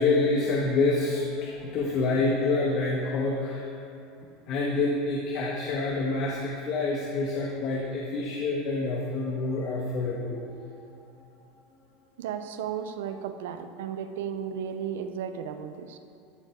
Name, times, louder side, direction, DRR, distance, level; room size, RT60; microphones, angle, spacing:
voice 1, 0.0-3.9 4.5-10.4, left 3 dB, 55° left, -2 dB, 1.5 m, -27 dB
voice 2, 12.2-16.0, right 8 dB, 80° right, 9 dB, 0.7 m, -34 dB
13.0 x 6.7 x 4.7 m, 2.6 s
hypercardioid pair, 100°, 0 cm